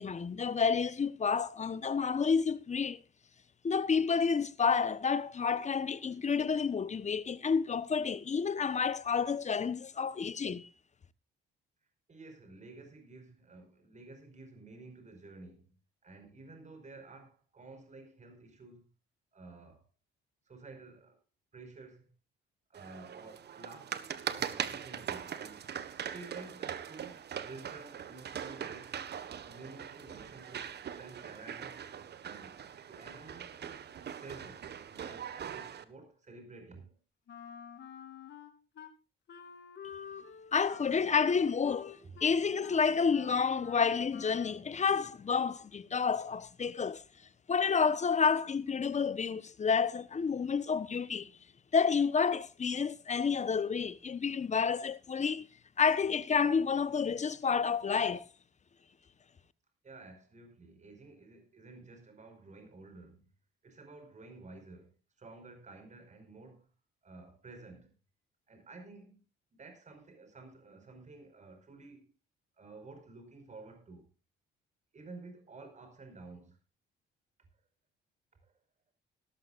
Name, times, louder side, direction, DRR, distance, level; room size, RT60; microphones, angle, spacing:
voice 1, 0.0-3.0 3.6-10.7 40.5-47.0 47.5-51.3 51.7-55.5 55.8-58.3, left 6 dB, 35° left, 1.1 m, -30 dB
voice 2, 12.1-15.7 16.0-18.9 19.3-19.9 20.5-21.2 21.5-22.1 22.7-25.7 26.1-29.0 29.4-31.9 32.2-33.8 34.1-37.0 42.0-42.1 59.8-63.2 63.6-64.9 65.2-66.7 67.0-67.9 68.5-69.2 69.5-72.1 72.6-74.1 74.9-76.6 78.4-78.5, right 3 dB, 35° right, 5.3 m, -52 dB
sound 1, 22.7-35.8, right 8 dB, 55° right, 1.5 m, -41 dB
Wind instrument woodwind instrument, 37.3-38.9 39.3-44.6, left 7 dB, 65° left, 3.0 m, -49 dB
17.5 x 13.0 x 2.5 m
cardioid pair, 90°, 20 cm